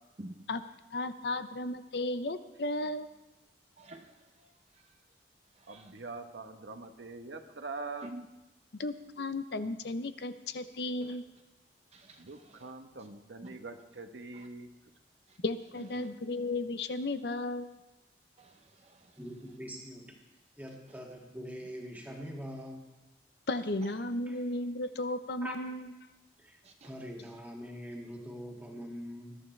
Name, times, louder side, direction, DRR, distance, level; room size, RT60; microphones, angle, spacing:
voice 1, 0.9-3.1 8.8-11.2 15.4-17.7 23.5-25.9, left 2 dB, 65° left, 10 dB, 0.7 m, -34 dB
voice 2, 3.8-4.8 5.6-5.9 8.0-8.3 11.0-11.1 11.9-12.7 13.4-13.6 14.3-14.5 15.3-15.4 16.0-16.1 18.4-19.2 26.6-26.9, right 1 dB, 40° right, 4 dB, 0.6 m, -50 dB
voice 3, 5.7-8.1 12.2-14.7, right 3 dB, 90° right, 5 dB, 1.1 m, -43 dB
voice 4, 19.2-20.2 20.6-22.9 24.3-24.4 25.4-25.6 26.4-29.4, equal, 10° right, -1 dB, 2.2 m, -43 dB
20.5 x 12.0 x 3.3 m, 1.0 s
head